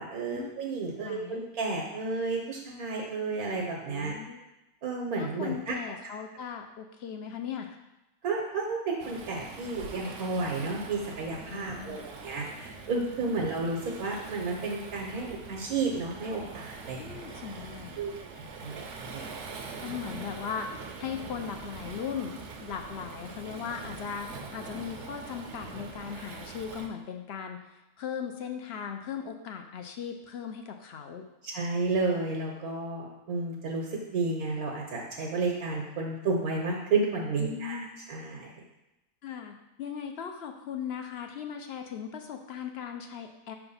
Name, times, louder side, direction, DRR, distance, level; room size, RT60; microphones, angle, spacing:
voice 1, 0.0-4.2 4.8-5.8 6.0-6.2 8.2-17.2 18.0-18.1 18.6-19.2 31.4-38.5, right 3 dB, 80° right, -1 dB, 1.3 m, -32 dB
voice 2, 1.0-1.4 3.9-4.4 5.2-7.8 11.5-12.1 13.2-13.3 17.0-18.0 19.8-27.6 28.0-31.3 37.4-37.9 39.2-43.5, left 7 dB, 60° left, 5 dB, 0.7 m, -38 dB
Waves surf, 9.0-26.9, right 4 dB, 60° right, 0.9 m, -43 dB
5.8 x 3.4 x 5.5 m, 0.96 s
omnidirectional pair, 1.5 m